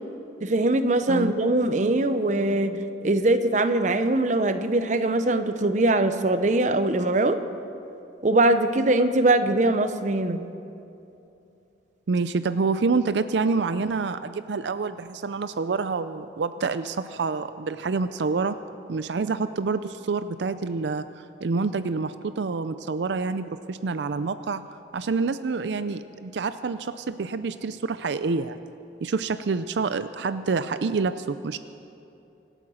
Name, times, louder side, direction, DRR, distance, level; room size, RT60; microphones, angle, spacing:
voice 1, 0.4-7.4 8.2-10.4, right 2 dB, 45° right, 9 dB, 0.8 m, -22 dB
voice 2, 12.1-18.6 18.9-21.0 21.4-24.6 24.9-28.6 29.0-31.6, right 4 dB, 80° right, 12 dB, 0.5 m, -27 dB
25.5 x 9.0 x 6.3 m, 2.8 s
head